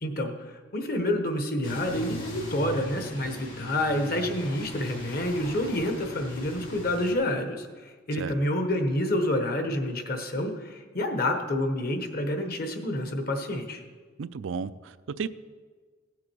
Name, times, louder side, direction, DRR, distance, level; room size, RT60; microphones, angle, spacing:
voice 1, 0.0-0.3 0.7-13.8, left 1 dB, 50° left, 5 dB, 1.2 m, -28 dB
sound 1, 1.6-7.1, equal, 80° left, 3.3 m, -39 dB
voice 2, 14.2-15.3, right 6 dB, 75° right, 14 dB, 0.4 m, -33 dB
16.5 x 7.4 x 4.6 m, 1.5 s
head